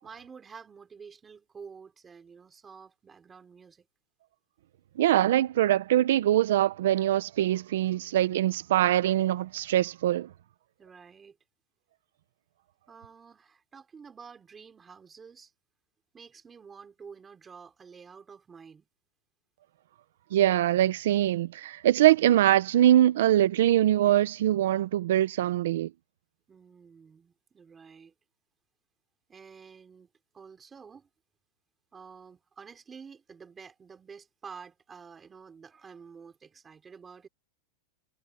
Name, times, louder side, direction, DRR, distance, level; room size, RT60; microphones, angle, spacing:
voice 1, 0.0-3.9 10.8-11.4 12.9-15.5 16.1-18.9 26.5-28.1 29.3-30.1 30.3-31.1 31.9-37.3, right 6 dB, 15° right, 4.4 m, -49 dB
voice 2, 5.0-10.3 20.3-25.9, right 12 dB, 70° right, 0.8 m, -23 dB
supercardioid pair, 170°, 0 cm